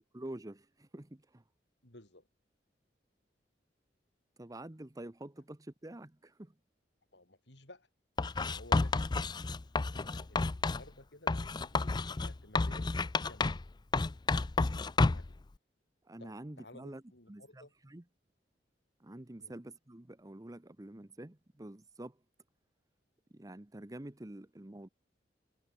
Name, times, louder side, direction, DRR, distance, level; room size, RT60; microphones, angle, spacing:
voice 1, 0.0-1.4 4.4-6.5 16.0-17.0 17.3-18.0 19.0-22.2 23.3-24.9, right 1 dB, 20° right, 0.9 m, -47 dB
voice 2, 1.8-2.3 7.1-7.9 8.5-8.9 9.9-11.9 12.2-12.9 13.3-13.5 15.1-15.3 16.2-17.7 19.4-19.5, left 1 dB, 75° left, 5.8 m, -56 dB
Writing, 8.2-10.9 11.3-13.7 13.9-15.3, left 3 dB, 25° left, 0.4 m, -31 dB
head